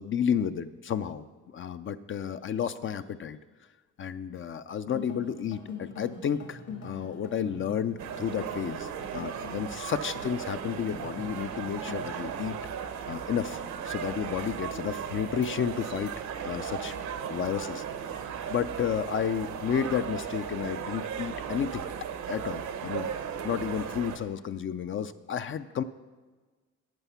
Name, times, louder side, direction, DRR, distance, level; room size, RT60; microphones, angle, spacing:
voice 1, 0.0-3.4 4.0-12.6 13.1-16.1 16.4-16.9 17.3-17.8 18.2-21.8 22.3-23.1 23.4-25.8, left 8 dB, 40° left, 11 dB, 0.4 m, -32 dB
sound 1, 4.9-12.1, left 5 dB, 65° left, 1.8 m, -44 dB
sound 2, 8.0-24.2, right 7 dB, 70° right, 0.9 m, -36 dB
11.5 x 8.0 x 5.6 m, 1.3 s
cardioid pair, 90°, 30 cm